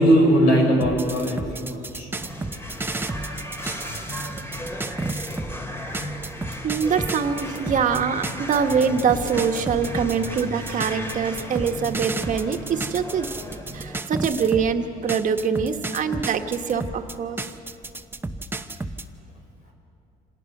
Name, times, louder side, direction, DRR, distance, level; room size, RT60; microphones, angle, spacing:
voice 1, 0.0-2.1, equal, 80° left, 1 dB, 5.4 m, -19 dB
sound 1, 0.8-5.6 5.9-14.7 15.1-19.1, right 2 dB, 15° right, 0.8 m, -32 dB
sound 2, 2.2-14.0, equal, 15° left, 2.4 m, -35 dB
voice 2, 2.9-4.4 6.6-13.3 13.7-17.5, right 6 dB, 50° right, 6 dB, 1.4 m, -24 dB
26.5 x 18.0 x 6.7 m, 2.8 s
cardioid pair, 110°, 17 cm